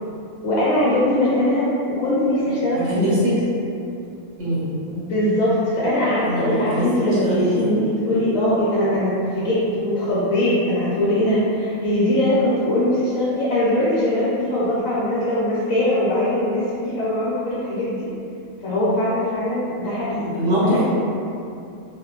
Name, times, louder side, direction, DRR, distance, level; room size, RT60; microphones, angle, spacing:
voice 1, 0.4-1.7 2.0-3.2 4.9-18.1 18.6-20.9, left 1 dB, 75° left, -10 dB, 1.0 m, -21 dB
voice 2, 2.9-3.3 4.4-4.7 6.2-6.8 7.2-7.7 20.4-20.9, equal, 80° right, -11 dB, 1.2 m, -21 dB
2.9 x 2.1 x 2.2 m, 2.6 s
omnidirectional pair, 1.5 m